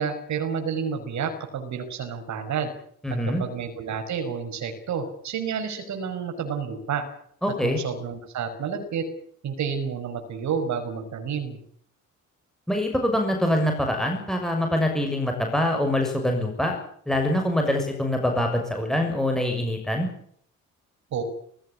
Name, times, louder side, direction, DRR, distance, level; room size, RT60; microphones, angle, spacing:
voice 1, 0.0-2.7 3.4-7.1 7.6-9.1 9.4-11.6 21.1-21.2, right 6 dB, 70° right, 5 dB, 5.5 m, -30 dB
voice 2, 3.0-3.4 7.4-7.8 12.7-16.8 17.1-20.1, left 1 dB, ahead, 2 dB, 6.5 m, -24 dB
20.5 x 17.0 x 9.8 m, 0.65 s
cardioid pair, 90°, 30 cm